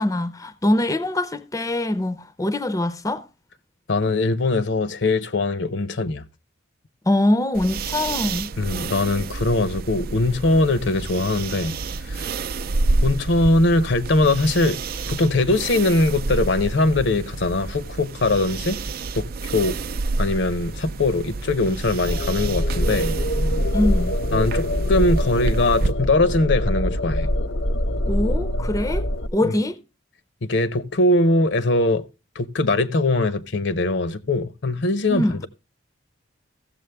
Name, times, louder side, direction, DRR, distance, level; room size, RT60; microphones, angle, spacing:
voice 1, 0.0-3.3 7.1-8.5 23.7-24.1 28.1-29.8 35.1-35.4, left 1 dB, 15° left, 0.5 m, -23 dB
voice 2, 3.9-6.3 8.6-11.8 12.1-12.3 13.0-14.8 15.1-18.8 19.2-19.8 20.2-23.1 24.3-27.3 29.4-29.5 30.4-32.0 32.4-35.2, left 2 dB, 65° left, 0.8 m, -21 dB
sound 1, 7.5-25.9, right 3 dB, 50° right, 0.5 m, -29 dB
sound 2, 22.0-29.3, equal, 85° left, 1.1 m, -24 dB
15.5 x 7.2 x 3.4 m
head